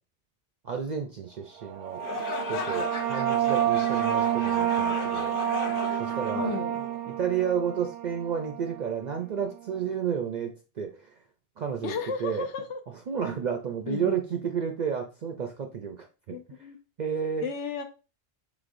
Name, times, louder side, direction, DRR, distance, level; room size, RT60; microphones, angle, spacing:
voice 1, 0.6-2.0 2.5-5.3 6.0-6.6 7.1-11.2 11.6-12.5 13.1-16.3 17.0-17.4, right 7 dB, 60° right, 4 dB, 0.5 m, -31 dB
sound 1, 1.7-8.9, right 11 dB, 90° right, 0.9 m, -28 dB
sound 2, 1.9-7.2, left 7 dB, 60° left, 0.6 m, -37 dB
voice 2, 6.3-6.8 11.8-12.8 13.9-14.2 16.3-16.8 17.4-17.8, left 5 dB, 80° left, 6 dB, 1.0 m, -33 dB
5.1 x 3.5 x 2.5 m, 0.33 s
omnidirectional pair, 1.2 m